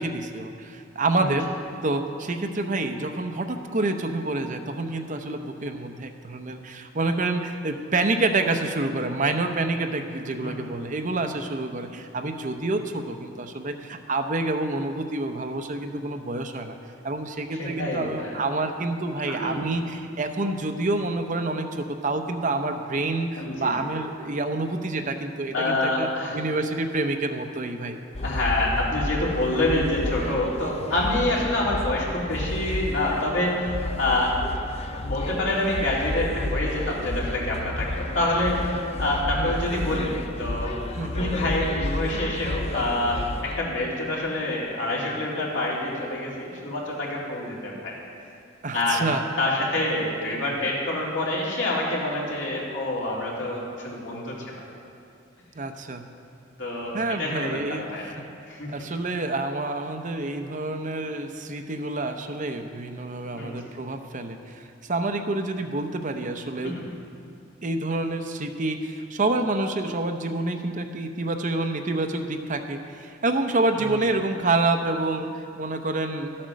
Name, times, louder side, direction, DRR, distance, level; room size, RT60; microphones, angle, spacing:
voice 1, 0.0-1.5 1.8-16.8 17.0-26.1 26.3-28.0 31.3-31.4 39.4-39.5 40.9-41.1 48.6-49.2 55.5-56.0 56.9-58.1 58.7-66.7 67.6-76.3, right 2 dB, 40° right, 6 dB, 0.7 m, -28 dB
voice 2, 10.3-10.7 17.6-18.4 19.2-19.6 23.4-23.8 25.5-26.4 28.2-34.4 35.0-47.9 48.7-49.0 49.4-54.5 56.6-58.1 58.5-58.7 63.3-63.8 66.6-66.8 73.7-73.9, left 1 dB, 70° left, -4 dB, 2.8 m, -27 dB
sound 1, 28.1-43.6, left 1 dB, 35° left, 0.5 m, -31 dB
13.0 x 8.7 x 6.3 m, 2.6 s
head